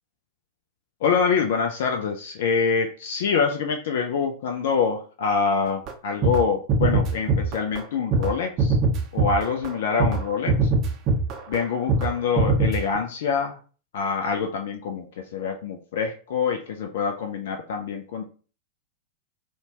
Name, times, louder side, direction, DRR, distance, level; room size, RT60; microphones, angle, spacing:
voice 1, 1.0-8.8 9.1-10.7 11.5-13.6 13.9-15.1 15.3-18.2, left 5 dB, 55° left, 4 dB, 0.3 m, -25 dB
sound 1, 5.9-6.0 6.2-6.4 6.7-7.8 8.1-8.3 8.6-9.7 10.0-10.2 10.5-11.6 11.9-12.1 12.4-13.0, right 3 dB, 35° right, 0.5 m, -22 dB
2.7 x 2.2 x 2.8 m, 0.39 s
figure-of-eight pair, 90°, 0 cm